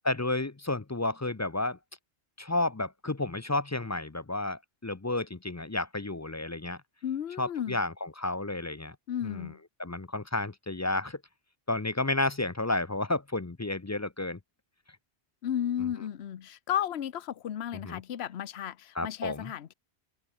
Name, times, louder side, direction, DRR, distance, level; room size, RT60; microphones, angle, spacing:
voice 1, 0.0-1.8 2.4-6.8 7.4-9.0 9.2-9.5 9.8-11.2 11.7-14.4 17.8-18.0 19.0-19.5, left 2 dB, 20° left, 0.5 m, -31 dB
voice 2, 7.0-7.8 9.1-9.6 15.4-19.7, left 10 dB, 70° left, 1.1 m, -33 dB
omnidirectional pair, 1.1 m